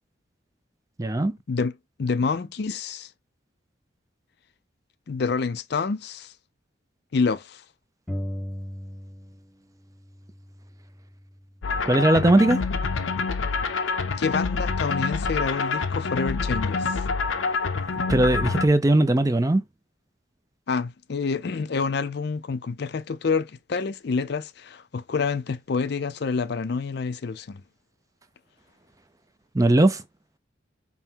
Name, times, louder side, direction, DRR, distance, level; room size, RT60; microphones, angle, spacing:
voice 1, 1.0-1.4 11.8-12.6 18.1-19.6 29.5-30.0, right 1 dB, 15° right, 0.4 m, -19 dB
voice 2, 2.0-3.1 5.1-6.3 7.1-7.6 14.2-17.0 20.7-27.6, left 4 dB, 55° left, 0.4 m, -27 dB
sound 1, 8.1-9.6 9.8-11.6, equal, 5° left, 1.0 m, -37 dB
sound 2, 11.6-18.7, left 4 dB, 85° left, 0.7 m, -26 dB
5.5 x 2.1 x 4.5 m
head